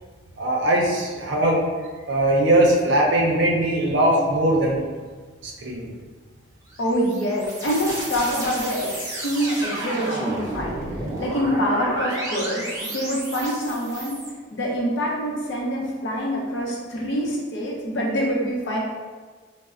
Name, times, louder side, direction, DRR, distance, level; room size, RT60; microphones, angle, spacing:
voice 1, 0.4-1.6 2.1-4.8 5.4-5.9, right 1 dB, 65° right, -1 dB, 0.5 m, -20 dB
sound 1, 6.7-14.3, right 1 dB, 15° right, 0.7 m, -31 dB
voice 2, 6.8-10.8 11.2-14.2 14.5-18.8, equal, 65° left, -3 dB, 0.7 m, -25 dB
4.1 x 2.0 x 2.4 m, 1.4 s
head